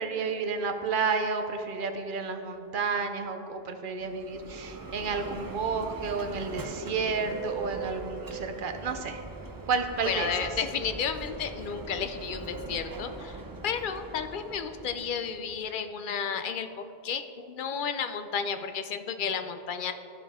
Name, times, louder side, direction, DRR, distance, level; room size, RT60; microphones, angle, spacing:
voice 1, 0.0-9.2 9.7-10.3, right 4 dB, 60° right, 6 dB, 0.8 m, -31 dB
Bell, 3.9-15.7, right 3 dB, 30° right, 0.4 m, -41 dB
voice 2, 10.0-19.9, left 7 dB, 60° left, 9 dB, 0.7 m, -32 dB
14.0 x 5.1 x 3.6 m, 2.8 s
omnidirectional pair, 1.0 m